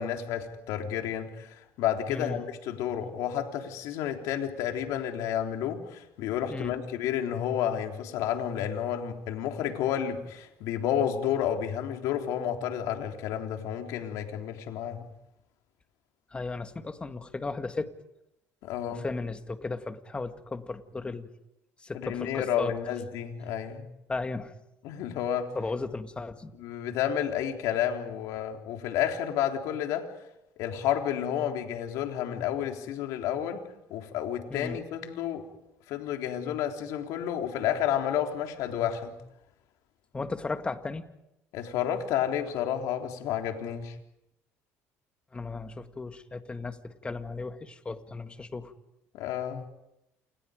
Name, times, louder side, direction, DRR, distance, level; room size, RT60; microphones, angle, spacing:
voice 1, 0.0-15.1 18.6-19.1 21.9-23.8 24.8-25.5 26.6-30.1 30.6-33.6 33.9-35.4 35.9-39.1 41.5-44.0 49.1-49.6, left 9 dB, 80° left, 3 dB, 3.7 m, -31 dB
voice 2, 16.3-17.9 18.9-21.3 21.8-22.7 24.1-24.5 25.5-26.5 34.5-34.8 40.1-41.0 45.3-48.7, left 3 dB, 20° left, 8 dB, 2.0 m, -35 dB
29.0 x 28.5 x 5.2 m, 0.86 s
cardioid pair, 110°, 6 cm